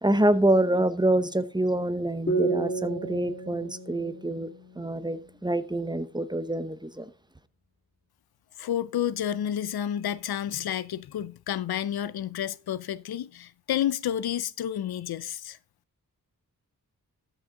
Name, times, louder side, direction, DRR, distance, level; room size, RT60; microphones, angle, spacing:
voice 1, 0.0-4.5 4.8-7.1, right 1 dB, 10° right, 0.8 m, -26 dB
sound 1, 2.3-5.7, right 3 dB, 30° left, 3.1 m, -32 dB
voice 2, 8.6-15.6, left 10 dB, 85° left, 0.5 m, -30 dB
13.5 x 6.3 x 3.7 m
cardioid pair, 70°, 36 cm